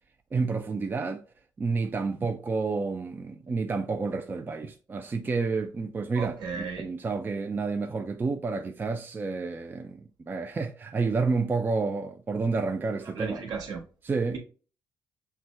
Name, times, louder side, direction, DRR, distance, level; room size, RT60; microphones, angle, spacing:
voice 1, 0.3-1.2 1.6-13.4 14.0-14.4, right 4 dB, 25° right, 0.4 m, -30 dB
voice 2, 6.1-6.8 13.0-13.8 14.3-14.4, right 5 dB, 70° right, 1.2 m, -35 dB
5.7 x 2.2 x 3.2 m
cardioid pair, 80°, 8 cm